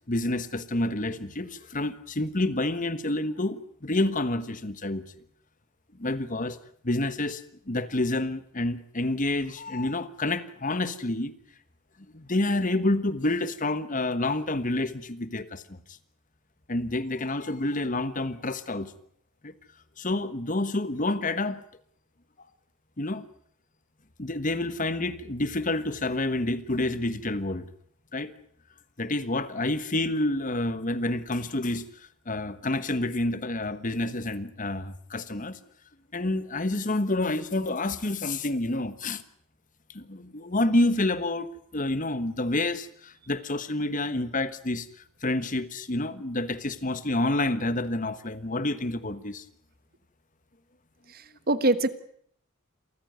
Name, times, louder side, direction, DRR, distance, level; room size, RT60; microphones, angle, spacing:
voice 1, 0.1-5.1 6.0-6.6 6.8-11.3 12.1-15.8 16.7-18.9 19.4-19.5 20.0-21.6 23.0-23.2 24.2-27.7 28.1-28.3 29.0-35.6 36.1-39.2 39.9-44.9 45.2-49.4, left 2 dB, 35° left, 1.4 m, -28 dB
voice 2, 51.1-51.9, right 2 dB, 45° right, 1.4 m, -24 dB
28.0 x 14.5 x 9.3 m
head